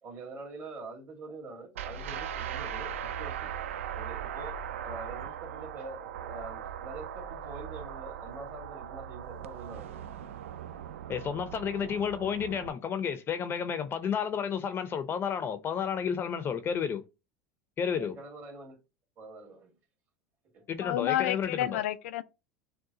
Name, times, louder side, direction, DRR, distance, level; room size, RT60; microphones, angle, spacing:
voice 1, 0.0-3.5 3.9-10.0 17.9-18.8 19.2-19.8 20.5-20.6, right 3 dB, 40° right, 2.2 m, -45 dB
sound 1, 1.7-12.7, right 9 dB, 90° right, 0.3 m, -39 dB
voice 2, 11.1-17.0 17.8-18.2 20.7-21.8, left 7 dB, 35° left, 0.6 m, -31 dB
voice 3, 20.8-22.2, left 13 dB, 80° left, 0.4 m, -30 dB
6.4 x 2.2 x 2.8 m
hypercardioid pair, 100°, 7 cm